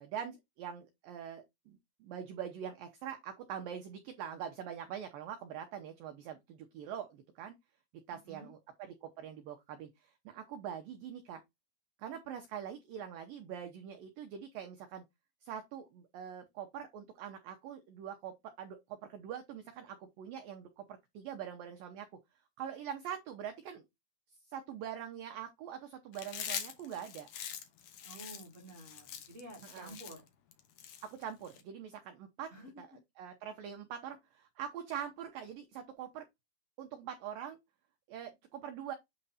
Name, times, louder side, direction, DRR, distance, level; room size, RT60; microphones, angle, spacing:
voice 1, 0.0-7.5 8.1-8.6 9.0-11.4 12.0-15.1 15.4-22.1 22.6-23.8 24.4-27.3 29.6-30.0 31.0-32.5 32.8-32.9 33.2-36.3 36.8-37.6 38.1-38.9, right 9 dB, 75° right, 2.2 m, -44 dB
Chewing mastication, 26.1-31.6, left 9 dB, 70° left, 1.9 m, -43 dB
voice 2, 28.0-30.2 32.5-33.0, right 1 dB, 40° right, 1.1 m, -51 dB
8.9 x 3.2 x 4.2 m
omnidirectional pair, 5.0 m